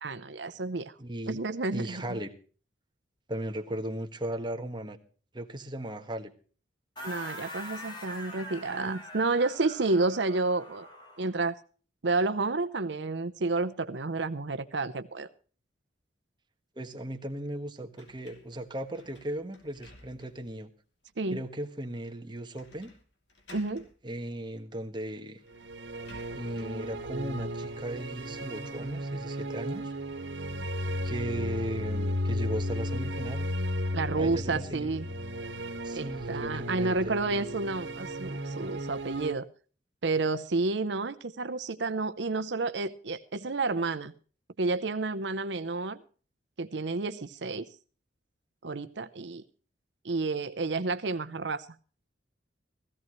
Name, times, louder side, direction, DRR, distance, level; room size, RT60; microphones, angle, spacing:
voice 1, 0.0-0.9 1.3-2.2 7.0-10.9 11.2-11.5 12.0-15.3 21.2-21.4 23.5-23.8 33.9-35.1 35.9-39.5 40.0-44.1 44.6-46.0 46.6-47.7 48.6-49.4 50.0-51.7, right 3 dB, 70° right, 11 dB, 0.8 m, -30 dB
voice 2, 1.0-1.4 1.7-2.3 3.3-5.0 5.3-6.3 16.7-20.7 21.3-22.9 24.0-25.4 26.3-29.9 31.0-33.5 34.2-34.9 35.8-37.2, right 1 dB, 25° right, 5 dB, 1.5 m, -37 dB
sound 1, 7.0-11.4, left 1 dB, 25° left, 3.0 m, -43 dB
sound 2, 18.0-20.5 21.0-21.1 22.5-23.0 23.3-23.9 24.9-25.0 25.4-26.9, left 2 dB, 75° left, 3.0 m, -55 dB
sound 3, 25.5-39.3, equal, 85° right, 1.5 m, -34 dB
16.5 x 15.0 x 3.1 m, 0.40 s
head